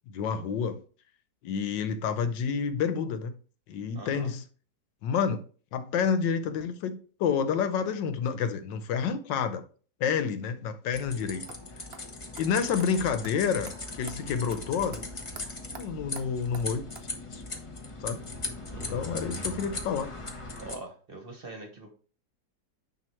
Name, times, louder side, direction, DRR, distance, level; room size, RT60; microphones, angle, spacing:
voice 1, 0.1-0.8 1.4-3.3 3.7-4.4 5.0-5.4 5.7-9.6 10.0-11.4 12.4-15.0 15.7-16.9 17.3-17.4 18.0-18.2 18.9-20.1, left 6 dB, 90° left, 1.5 m, -29 dB
voice 2, 3.9-4.3 18.7-19.0 20.6-21.9, right 2 dB, 35° right, 1.2 m, -43 dB
sound 1, 10.9-20.8, left 2 dB, 25° left, 0.7 m, -39 dB
sound 2, 11.5-11.6 11.9-12.0 12.4-12.5 12.8-12.9 13.2-13.3 13.7-13.8 14.1-14.2 14.5-14.6 14.9-15.0 15.3-15.4 15.7-15.8 16.1-16.3 16.5-16.6 16.9-17.0, right 6 dB, 50° right, 0.8 m, -45 dB
9.3 x 3.3 x 4.4 m
omnidirectional pair, 1.9 m